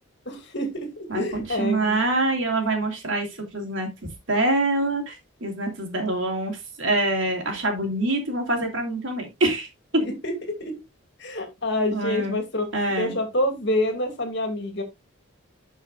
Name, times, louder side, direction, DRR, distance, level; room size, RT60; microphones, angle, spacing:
voice 1, 0.3-2.0 10.0-10.8 11.2-12.7 13.0-14.8, left 1 dB, 55° left, 5 dB, 2.4 m, -27 dB
voice 2, 1.1-9.7 11.9-12.4 12.7-13.1, right 2 dB, 60° right, 2 dB, 3.0 m, -25 dB
12.5 x 5.5 x 2.5 m, 0.21 s
head